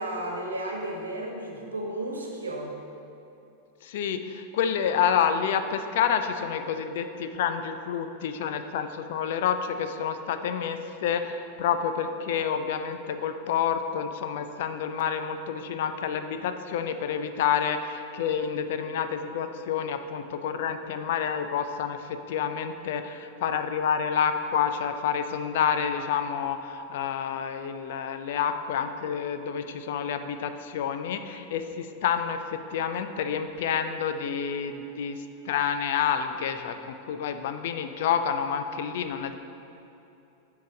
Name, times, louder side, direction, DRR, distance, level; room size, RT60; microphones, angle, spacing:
voice 1, 0.0-2.7, right 1 dB, 75° right, 0 dB, 1.2 m, -33 dB
voice 2, 3.8-39.4, left 7 dB, 55° left, 8 dB, 0.4 m, -29 dB
7.9 x 4.8 x 5.1 m, 2.8 s
figure-of-eight pair, 90°, 0 cm